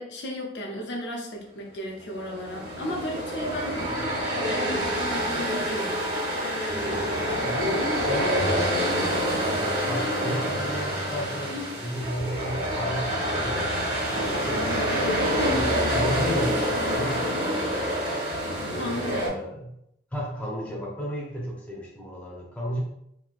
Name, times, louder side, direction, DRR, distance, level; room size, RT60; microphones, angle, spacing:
voice 1, 0.0-6.0 11.4-11.8 15.4-15.8 18.7-19.4, equal, 60° left, 0 dB, 0.5 m, -35 dB
sound 1, 2.0-19.3, equal, 35° right, 0.9 m, -27 dB
voice 2, 7.4-15.7 15.9-18.1 19.3-19.7 20.1-22.8, equal, 5° left, -4 dB, 0.7 m, -34 dB
3.1 x 2.7 x 2.4 m, 0.77 s
head